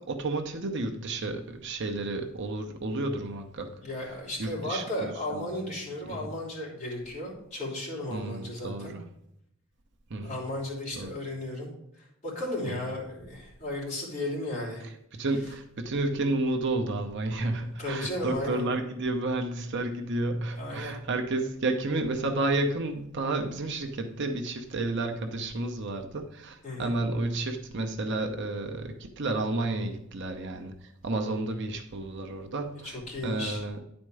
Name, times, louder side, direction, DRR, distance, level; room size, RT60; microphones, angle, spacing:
voice 1, 0.0-3.8 4.4-5.5 6.1-6.3 8.1-9.0 10.1-10.4 10.9-11.1 12.7-12.8 15.1-30.7 31.0-32.9 33.2-33.8, right 2 dB, 60° right, 0.8 m, -31 dB
voice 2, 3.7-8.9 10.2-14.8 17.8-18.6 20.5-21.0 26.6-27.0 32.8-33.6, left 1 dB, 35° left, 3.3 m, -35 dB
10.0 x 4.4 x 4.8 m
head